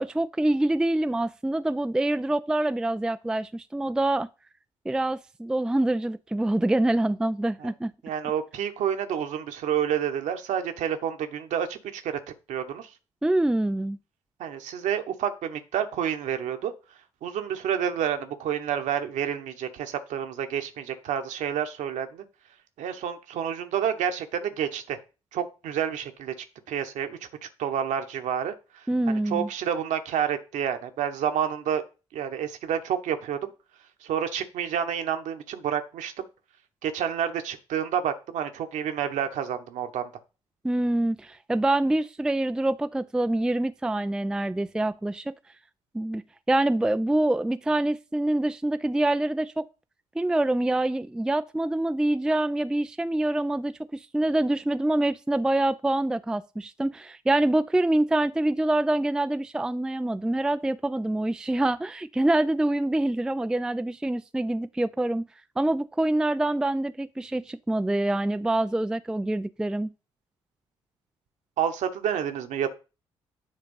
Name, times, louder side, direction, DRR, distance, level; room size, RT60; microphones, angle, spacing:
voice 1, 0.0-4.3 4.9-7.9 13.2-14.0 28.9-29.5 40.6-45.3 45.9-49.7 50.2-65.3 65.6-69.9, right 1 dB, 5° right, 0.4 m, -25 dB
voice 2, 8.0-12.2 12.5-12.9 14.4-16.7 17.2-22.2 22.8-25.0 25.3-26.3 26.7-31.8 32.1-33.5 34.0-36.1 36.8-40.1 71.6-72.7, right 9 dB, 60° right, 1.2 m, -29 dB
9.9 x 3.5 x 5.5 m
figure-of-eight pair, 45°, 14 cm